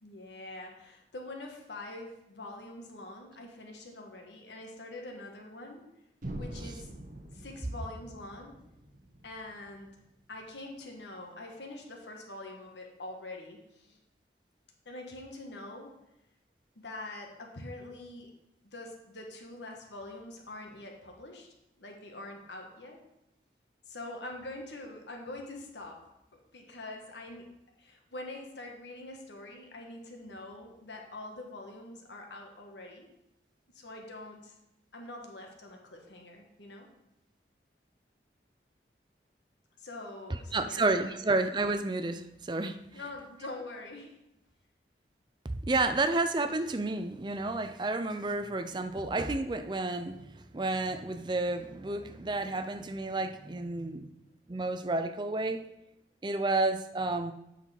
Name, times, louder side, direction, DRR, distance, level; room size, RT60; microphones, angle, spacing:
voice 1, 0.0-5.9 6.3-6.9 7.3-8.6 9.2-9.9 10.3-14.0 14.8-15.9 16.7-18.3 18.6-21.5 21.8-23.0 23.9-26.0 26.5-27.5 27.8-33.1 33.7-34.5 34.9-36.9 39.8-41.1 42.9-44.2, left 2 dB, 80° left, 2 dB, 1.4 m, -44 dB
sound 1, 6.2-10.2, right 1 dB, 50° right, 1.2 m, -44 dB
voice 2, 40.3-42.8 45.6-54.1 54.5-55.7 56.2-57.3, right 2 dB, 25° right, 9 dB, 0.4 m, -31 dB
8.3 x 5.7 x 4.3 m, 0.87 s
head